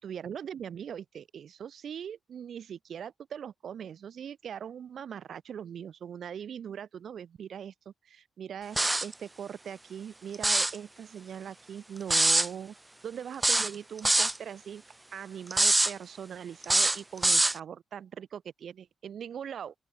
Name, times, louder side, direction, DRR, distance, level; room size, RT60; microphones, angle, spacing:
voice 1, 0.0-12.7 13.0-14.8 15.1-19.7, right 8 dB, 55° right, 5.8 m, -41 dB
sound 1, 8.8-9.1 10.3-10.8 12.1-12.5 13.4-14.4 15.5-15.9 16.6-17.6, right 2 dB, 10° right, 0.4 m, -24 dB
open air
wide cardioid pair, 165°, 0 cm